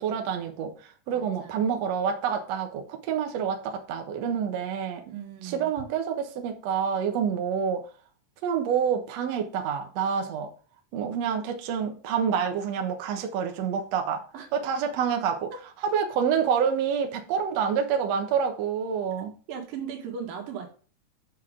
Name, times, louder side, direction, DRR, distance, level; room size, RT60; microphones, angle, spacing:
voice 1, 0.0-5.0 5.4-7.9 8.4-10.5 10.9-14.2 14.5-15.5 15.8-19.3, right 7 dB, 65° right, 1.9 m, -27 dB
voice 2, 1.1-1.6 5.0-5.7 14.3-14.5 15.5-15.6 19.5-20.7, right 7 dB, 85° right, 3.3 m, -38 dB
8.6 x 6.3 x 3.7 m
omnidirectional pair, 3.9 m